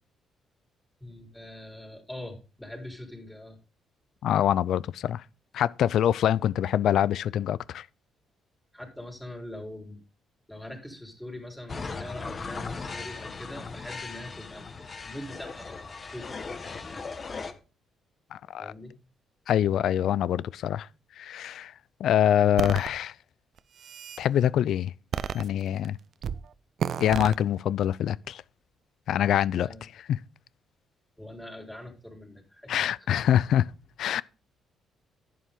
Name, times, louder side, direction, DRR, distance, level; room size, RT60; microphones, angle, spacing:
voice 1, 1.0-3.6 8.7-10.0 10.5-17.1 18.6-18.9 29.6-29.8 31.2-32.9, left 1 dB, 5° left, 4.2 m, -43 dB
voice 2, 4.2-5.2 5.5-7.9 18.3-18.7 19.5-20.9 21.2-21.7 22.0-23.1 24.2-24.9 25.3-26.0 27.0-28.4 29.1-30.2 32.7-33.7 34.0-34.2, left 10 dB, 75° left, 0.5 m, -25 dB
sound 1, 11.7-17.5, left 4 dB, 40° left, 1.6 m, -38 dB
sound 2, 22.6-22.9 23.6-24.2 25.1-25.9 26.2-26.4 26.8-27.4, right 8 dB, 60° right, 0.6 m, -31 dB
11.0 x 9.3 x 3.8 m
cardioid pair, 90°, 0 cm